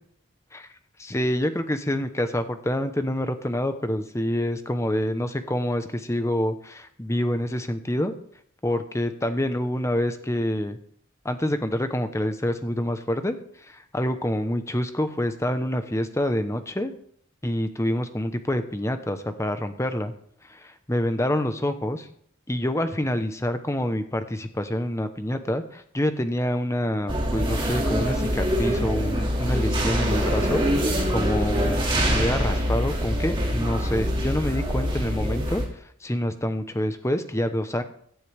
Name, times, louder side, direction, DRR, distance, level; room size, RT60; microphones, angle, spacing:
voice 1, 1.0-8.1 8.6-10.8 11.2-16.9 17.4-20.1 20.4-22.1 22.5-37.8, left 1 dB, 15° left, 9 dB, 0.9 m, -27 dB
sound 1, 27.1-35.7, equal, 25° right, 2.3 m, -24 dB
17.0 x 11.5 x 3.5 m, 0.65 s
head